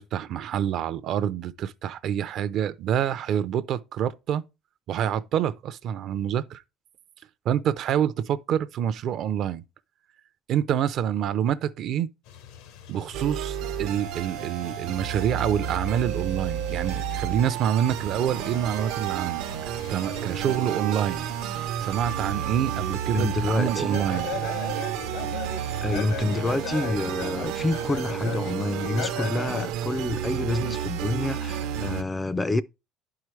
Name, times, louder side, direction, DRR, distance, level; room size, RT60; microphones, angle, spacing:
voice 1, 0.0-4.4 4.9-6.6 7.5-9.6 10.5-12.1 12.9-19.4 19.9-21.3 21.8-24.3, right 9 dB, 50° right, 0.5 m, -27 dB
sound 1, 12.2-26.1, left 8 dB, 85° left, 1.0 m, -47 dB
sound 2, 13.1-32.0, right 10 dB, 80° right, 0.8 m, -31 dB
voice 2, 23.1-24.0 25.8-32.6, left 2 dB, 15° left, 0.3 m, -28 dB
sound 3, 23.9-29.7, left 8 dB, 65° left, 0.8 m, -36 dB
10.5 x 4.7 x 3.1 m
cardioid pair, 145°, 0 cm